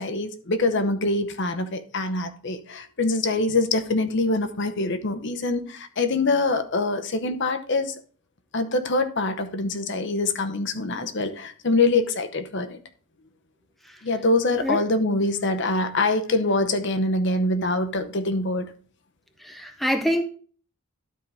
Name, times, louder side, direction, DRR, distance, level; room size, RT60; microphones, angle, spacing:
voice 1, 0.0-7.9 8.5-12.8 14.0-18.7, left 2 dB, 55° left, 0.8 m, -24 dB
voice 2, 19.4-20.2, equal, ahead, 0.6 m, -25 dB
12.0 x 4.6 x 3.4 m
head